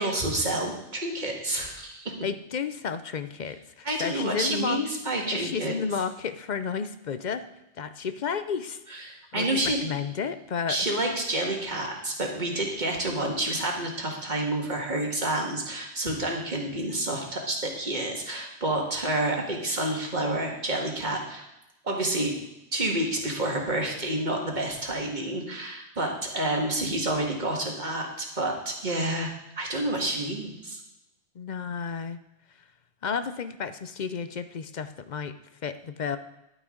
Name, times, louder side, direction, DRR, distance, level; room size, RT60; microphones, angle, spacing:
voice 1, 0.0-2.1 3.8-5.8 8.9-9.8 10.7-21.5 21.8-22.3 22.7-29.3 29.6-30.8, right 1 dB, 40° right, 1 dB, 2.0 m, -29 dB
voice 2, 2.2-4.8 5.3-7.4 7.8-10.8 31.4-32.2 33.0-35.3 35.6-36.2, left 6 dB, 50° left, 11 dB, 0.6 m, -32 dB
11.5 x 9.2 x 3.8 m, 0.90 s
omnidirectional pair, 1.2 m